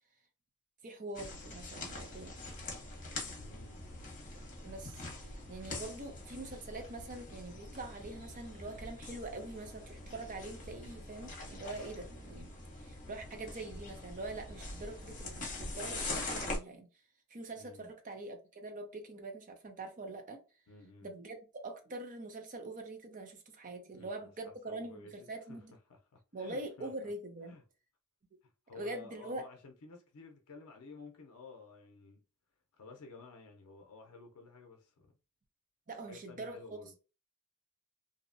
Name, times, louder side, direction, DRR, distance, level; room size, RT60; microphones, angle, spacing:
voice 1, 0.8-2.4 4.6-16.9 17.3-20.4 21.0-25.7 26.3-27.6 28.7-29.5 35.9-36.9, right 2 dB, 35° right, 0.6 m, -44 dB
sound 1, 1.2-16.6, left 2 dB, 35° left, 0.9 m, -44 dB
voice 2, 3.3-3.8 17.6-17.9 20.7-21.1 23.9-25.6 25.9-26.9 27.5-27.6 28.4-32.2 32.8-35.1 36.1-36.9, left 3 dB, 75° left, 0.5 m, -53 dB
2.7 x 2.1 x 2.5 m
head